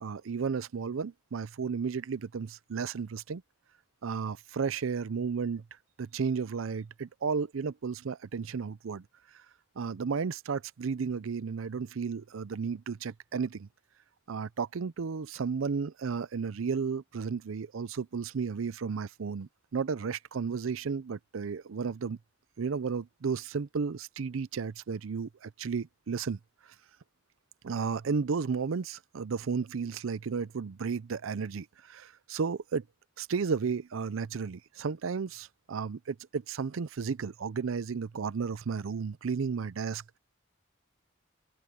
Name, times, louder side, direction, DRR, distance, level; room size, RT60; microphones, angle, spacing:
voice 1, 0.0-3.4 4.0-5.6 6.0-9.1 9.8-13.7 14.3-22.2 22.6-26.4 27.6-32.8 33.2-40.2, right 5 dB, 90° right, 0.5 m, -33 dB
head